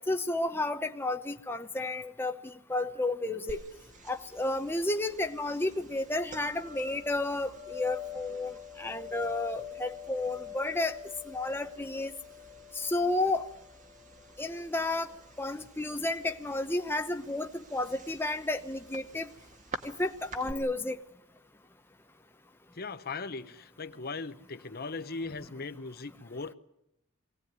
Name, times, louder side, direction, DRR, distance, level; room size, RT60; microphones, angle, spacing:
voice 1, 0.1-3.6 4.1-11.0 11.3-12.1 12.7-13.5 14.4-15.1 15.4-19.3 19.8-21.0, left 2 dB, 10° left, 0.8 m, -32 dB
sound 1, 3.5-20.5, left 4 dB, 35° right, 1.8 m, -46 dB
voice 2, 22.7-26.5, left 4 dB, 45° left, 0.9 m, -39 dB
24.0 x 18.0 x 9.4 m
head